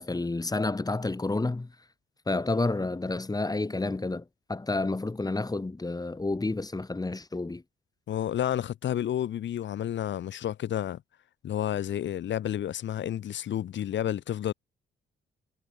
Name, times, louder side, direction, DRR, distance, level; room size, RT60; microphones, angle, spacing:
voice 1, 0.0-1.7 2.3-4.2 4.5-7.6, left 2 dB, 20° left, 7.4 m, -30 dB
voice 2, 8.1-11.0 11.4-14.5, left 11 dB, 70° left, 3.7 m, -30 dB
cardioid pair, 90°, 20 cm